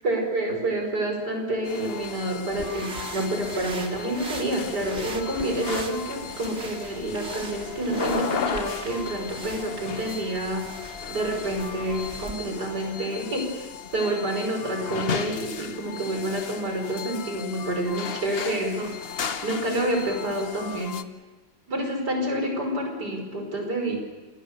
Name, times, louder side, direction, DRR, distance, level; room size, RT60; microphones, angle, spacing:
voice 1, 0.0-10.7 11.1-21.0 21.7-24.0, right 1 dB, 55° right, 3 dB, 6.0 m, -28 dB
sound 1, 1.6-21.0, left 6 dB, 45° left, 0.8 m, -35 dB
sound 2, 2.5-12.4, right 2 dB, 35° right, 2.6 m, -40 dB
27.5 x 20.5 x 6.8 m, 1.3 s
omnidirectional pair, 2.1 m